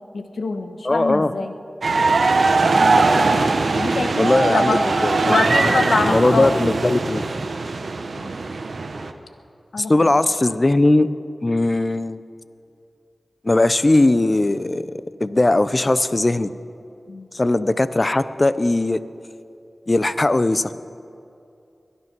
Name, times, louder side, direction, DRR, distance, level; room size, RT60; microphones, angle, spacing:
voice 1, 0.1-1.5 2.8-3.0 3.7-4.9 5.2-6.5 8.2-8.3 9.7-9.9 17.1-17.3, left 3 dB, 85° left, 6 dB, 1.1 m, -24 dB
voice 2, 0.8-1.3 4.2-5.3 6.0-7.2 9.8-11.1 11.4-12.2 13.4-16.5 17.3-19.0 19.9-20.7, left 2 dB, 35° left, 14 dB, 0.6 m, -19 dB
sound 1, 1.8-9.1, right 3 dB, 75° right, 0.8 m, -20 dB
22.0 x 9.7 x 6.1 m, 2.6 s
cardioid pair, 50°, 0 cm